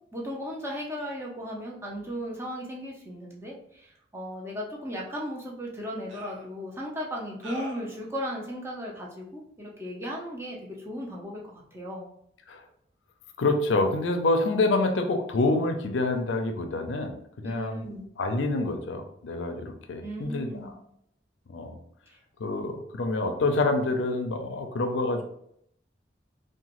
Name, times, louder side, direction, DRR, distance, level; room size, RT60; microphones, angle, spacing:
voice 1, 0.1-12.1 17.4-18.1 20.0-20.7 22.1-22.2, equal, 15° right, -3 dB, 0.5 m, -36 dB
sound 1, 6.1-6.5 7.4-7.9, right 1 dB, 85° right, 0.6 m, -43 dB
voice 2, 13.4-17.8 18.2-20.5 21.5-21.8 22.4-25.2, left 2 dB, 80° left, 5 dB, 0.4 m, -27 dB
2.9 x 2.2 x 2.9 m, 0.72 s
head